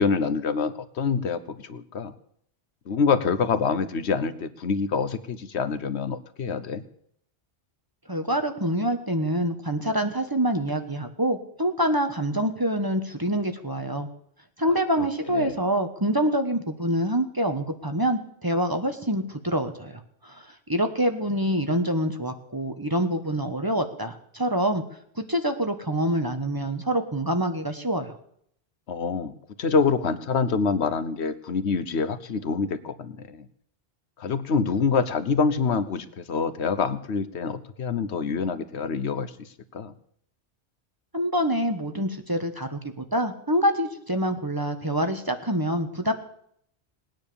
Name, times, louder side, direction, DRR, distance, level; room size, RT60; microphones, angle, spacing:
voice 1, 0.0-2.1 2.9-6.8 15.0-15.6 28.9-33.4 34.2-39.3 39.7-39.9, left 5 dB, 75° left, 12 dB, 1.2 m, -26 dB
voice 2, 8.1-14.1 14.6-19.9 20.2-24.8 25.2-28.2 41.1-46.1, equal, 20° right, 6 dB, 1.2 m, -26 dB
19.0 x 9.6 x 6.9 m, 0.68 s
omnidirectional pair, 1.1 m